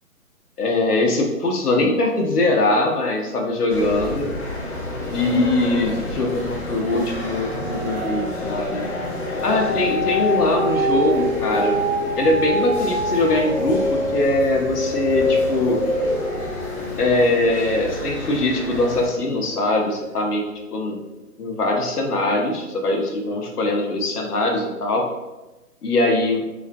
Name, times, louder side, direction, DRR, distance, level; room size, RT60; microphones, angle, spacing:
voice 1, 0.6-4.3 5.1-8.8 9.4-11.8 12.2-15.8 17.0-20.4 20.7-21.0 21.4-25.1 25.8-26.4, left 2 dB, 90° left, 1 dB, 0.7 m, -21 dB
sound 1, 3.7-19.1, left 1 dB, 45° left, 0.7 m, -31 dB
sound 2, 6.9-19.2 19.7-19.8, left 1 dB, ahead, 0.4 m, -26 dB
2.5 x 2.4 x 2.2 m, 1.1 s
figure-of-eight pair, 150°, 45 cm